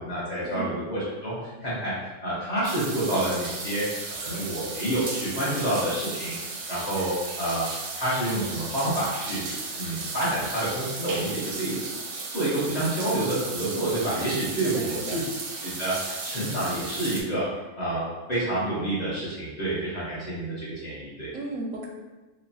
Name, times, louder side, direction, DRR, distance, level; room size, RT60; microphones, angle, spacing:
voice 1, 0.0-2.0 2.2-3.9 4.2-9.4 9.8-11.8 12.3-15.2 15.6-17.5 17.8-21.3, right 1 dB, 40° left, -9 dB, 0.7 m, -28 dB
sound 1, 2.6-17.2, right 3 dB, 65° right, 0.7 m, -35 dB
voice 2, 14.5-15.2 21.3-21.9, right 2 dB, 85° right, 0 dB, 1.0 m, -35 dB
3.1 x 2.0 x 2.6 m, 1.2 s
omnidirectional pair, 1.4 m